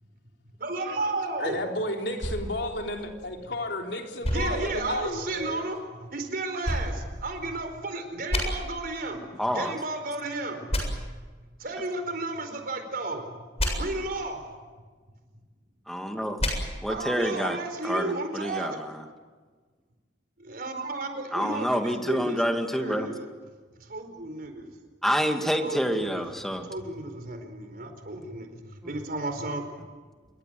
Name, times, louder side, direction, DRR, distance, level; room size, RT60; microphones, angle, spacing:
voice 1, 0.6-1.6 4.3-5.8 6.1-9.2 9.5-10.7 11.6-13.2 13.8-14.4 16.9-18.8 20.4-22.4 22.7-23.3 23.9-24.7 25.6-26.2 26.7-28.6 28.8-29.6, right 2 dB, 55° right, 7 dB, 4.6 m, -33 dB
voice 2, 1.4-5.6, left 1 dB, 75° left, 2 dB, 3.6 m, -32 dB
sound 1, 2.2-3.6 4.2-5.5 6.6-7.8 8.3-8.4 10.7-10.8 13.6-13.7 16.4-16.5, left 1 dB, 35° left, 7.4 m, -31 dB
voice 3, 9.4-9.7 15.9-16.4 16.8-17.6 17.8-19.0 21.3-23.1 25.0-26.7, equal, ahead, 4 dB, 2.2 m, -28 dB
27.5 x 23.0 x 7.8 m, 1.4 s
head